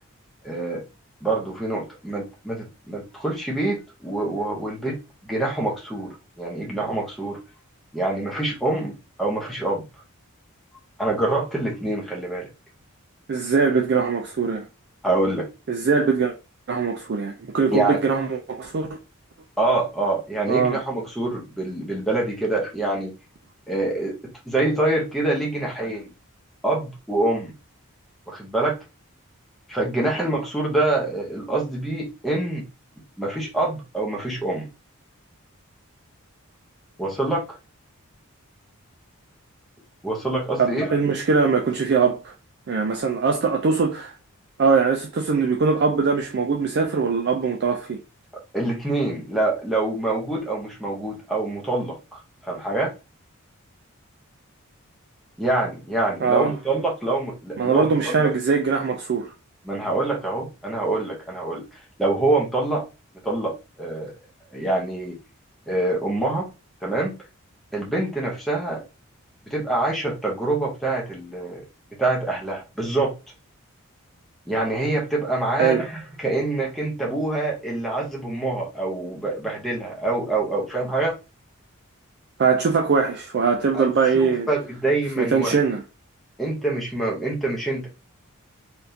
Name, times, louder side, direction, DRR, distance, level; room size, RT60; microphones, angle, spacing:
voice 1, 0.4-0.8 1.2-5.0 5.2-7.4 7.9-9.8 11.0-12.5 15.0-15.5 17.7-18.0 19.6-23.1 23.7-24.1 24.5-26.1 26.6-27.5 28.3-28.8 29.7-32.6 33.2-34.7 37.0-37.4 40.0-41.0 48.5-52.9 55.4-58.3 59.6-62.8 63.2-64.1 64.5-65.2 65.7-66.5 66.8-67.2 67.7-68.8 69.5-71.6 72.0-73.1 74.5-81.1 83.7-83.9 84.1-85.5 86.4-87.9, right 2 dB, ahead, 0.7 m, -25 dB
voice 2, 13.3-14.7 15.7-16.3 16.7-19.0 20.5-20.8 40.6-42.3 42.7-44.2 44.6-48.0 56.2-56.5 57.6-59.3 75.6-75.9 82.4-84.5 85.2-85.8, right 5 dB, 50° right, 0.4 m, -21 dB
3.5 x 2.4 x 2.7 m
head